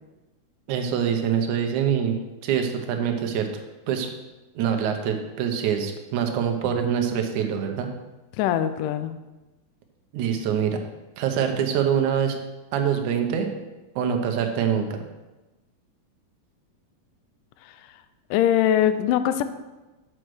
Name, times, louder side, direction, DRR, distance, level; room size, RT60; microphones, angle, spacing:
voice 1, 0.7-2.2 2.4-3.5 3.9-4.1 4.6-7.9 10.1-10.8 11.2-12.4 12.7-13.5 14.0-15.0, right 8 dB, 75° right, 4 dB, 1.8 m, -24 dB
voice 2, 8.4-9.1 18.3-19.4, left 10 dB, 90° left, 11 dB, 1.8 m, -21 dB
6.4 x 6.3 x 6.2 m, 1.1 s
omnidirectional pair, 4.4 m